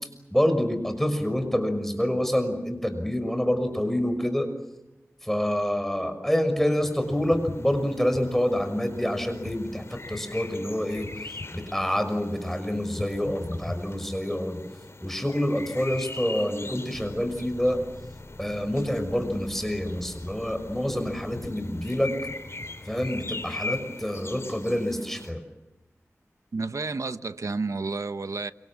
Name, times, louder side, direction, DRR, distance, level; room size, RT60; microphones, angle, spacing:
voice 1, 0.3-4.5 5.2-11.1 11.5-14.6 15.0-17.8 18.4-22.1 22.9-25.4, equal, 5° left, 6.1 m, -27 dB
sound 1, 6.8-25.3, left 2 dB, 55° left, 3.4 m, -40 dB
sound 2, 16.9-22.8, left 1 dB, 30° left, 2.2 m, -46 dB
voice 2, 26.5-28.5, right 3 dB, 80° right, 1.0 m, -30 dB
28.5 x 26.0 x 7.3 m
wide cardioid pair, 60°, 5 cm